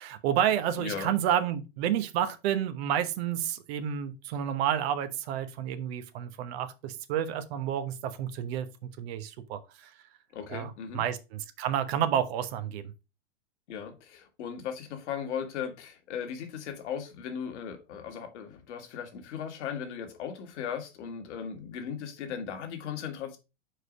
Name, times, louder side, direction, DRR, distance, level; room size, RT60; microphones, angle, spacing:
voice 1, 0.0-9.9 10.5-12.9, right 10 dB, 55° right, 1.1 m, -30 dB
voice 2, 0.8-1.1 10.3-11.0 13.7-23.4, left 7 dB, 70° left, 1.8 m, -37 dB
4.8 x 4.7 x 4.9 m
hypercardioid pair, 110°, 36 cm